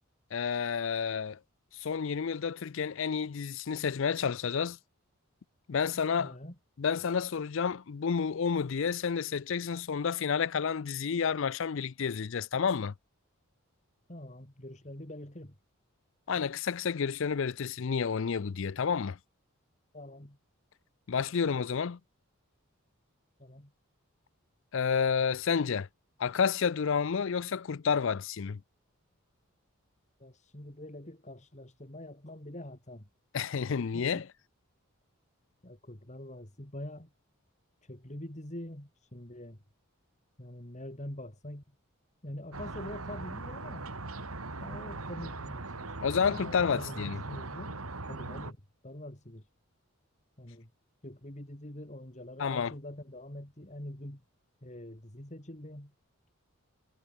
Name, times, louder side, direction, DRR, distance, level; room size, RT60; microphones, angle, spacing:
voice 1, 0.3-1.4 1.7-4.8 5.7-6.3 6.8-12.9 16.3-19.2 21.1-22.0 24.7-25.9 26.2-28.6 33.3-34.2 46.0-47.2 52.4-52.7, left 6 dB, 60° left, 0.5 m, -30 dB
voice 2, 6.2-6.5 14.1-15.5 19.9-20.4 23.4-23.7 30.2-33.1 33.9-34.2 35.6-37.1 37.8-39.6 40.4-41.6 42.2-43.9 44.6-47.8 48.1-48.6 48.8-49.5 50.4-50.7 51.0-54.2 54.6-55.9, left 1 dB, 35° left, 3.1 m, -45 dB
sound 1, 42.5-48.5, right 2 dB, 85° right, 2.7 m, -40 dB
head